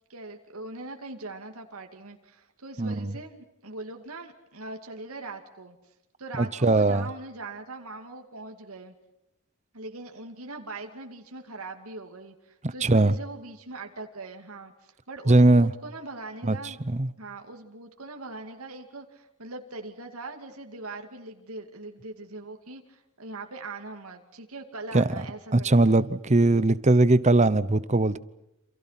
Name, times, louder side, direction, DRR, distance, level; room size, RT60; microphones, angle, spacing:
voice 1, 0.1-5.9 6.2-8.9 9.7-16.8 17.2-26.0, right 2 dB, 80° right, 2.5 m, -41 dB
voice 2, 2.8-3.1 6.4-7.1 12.6-13.1 15.3-15.7 16.4-16.6 16.9-17.1 24.9-25.1 25.5-28.2, right 2 dB, 30° right, 0.9 m, -20 dB
28.5 x 28.0 x 5.9 m
head